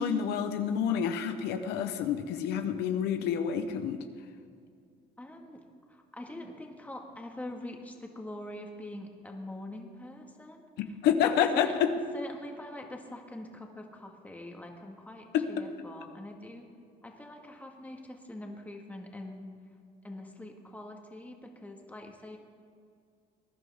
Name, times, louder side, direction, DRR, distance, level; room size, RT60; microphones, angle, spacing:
voice 1, 0.0-4.0 11.0-11.9 15.3-15.4, left 8 dB, 85° left, 8 dB, 0.9 m, -28 dB
voice 2, 5.2-11.8 12.1-16.7 17.0-19.5 20.0-22.4, left 1 dB, 10° left, 2 dB, 1.8 m, -44 dB
20.0 x 11.0 x 3.6 m, 2.3 s
cardioid pair, 110°, 17 cm